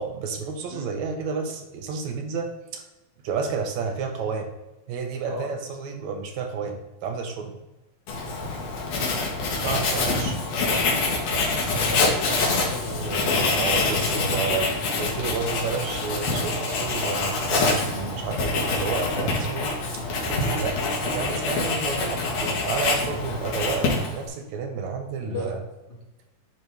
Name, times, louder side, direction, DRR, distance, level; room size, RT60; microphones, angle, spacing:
voice 1, 0.0-2.8 3.2-4.5 4.9-7.6 9.6-10.4 13.1-14.7 15.0-25.6, right 5 dB, 75° right, 4 dB, 2.1 m, -31 dB
Writing, 8.1-24.3, left 3 dB, 65° left, 2.5 m, -25 dB
voice 2, 11.7-13.5 13.9-15.1 25.2-25.5 25.9-26.0, left 1 dB, 35° left, -6 dB, 1.0 m, -34 dB
10.5 x 3.7 x 3.4 m, 1.0 s
omnidirectional pair, 3.4 m